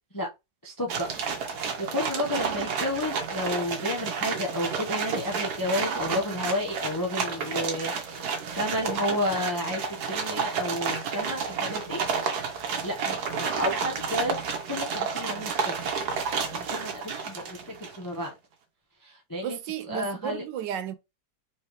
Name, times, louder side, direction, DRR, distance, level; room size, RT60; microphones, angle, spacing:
voice 1, 0.6-1.1 1.5-12.0 12.4-14.4 14.7-15.7 16.5-18.3 19.0-19.6 19.9-20.4, left 1 dB, 25° left, 0.4 m, -31 dB
Horsewagon driving steady ext, 0.9-18.1, right 5 dB, 65° right, 1.4 m, -31 dB
voice 2, 19.4-20.9, right 10 dB, 85° right, 1.3 m, -33 dB
4.4 x 3.4 x 3.0 m
omnidirectional pair, 1.9 m